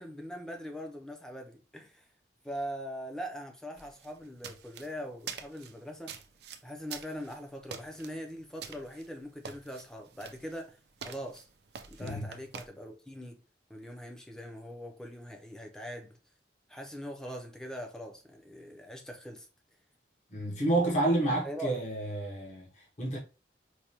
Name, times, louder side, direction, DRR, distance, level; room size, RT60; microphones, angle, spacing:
voice 1, 0.0-2.1 2.4-6.2 6.6-10.8 11.0-11.5 11.9-13.4 13.7-16.2 16.7-19.5 21.4-21.8, equal, 5° left, 0.5 m, -42 dB
sound 1, 3.8-12.7, right 7 dB, 60° right, 0.4 m, -47 dB
voice 2, 20.3-23.2, right 2 dB, 40° left, 0.9 m, -30 dB
4.6 x 2.2 x 2.8 m
head